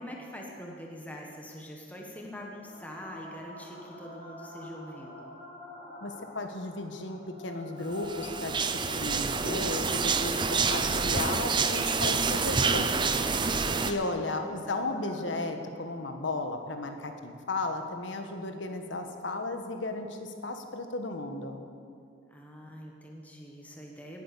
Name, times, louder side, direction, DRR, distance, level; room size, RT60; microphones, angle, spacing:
voice 1, 0.0-5.3 13.5-14.2 22.3-24.2, equal, 10° left, -1 dB, 1.4 m, -44 dB
sound 1, 2.6-17.6, left 1 dB, 35° left, 3.3 m, -47 dB
voice 2, 6.0-8.5 8.8-13.1 13.8-21.6, left 2 dB, 75° left, 6 dB, 1.4 m, -35 dB
sound 2, 8.0-13.9, right 4 dB, 25° right, 0.6 m, -27 dB
18.5 x 8.7 x 6.9 m, 2.4 s
head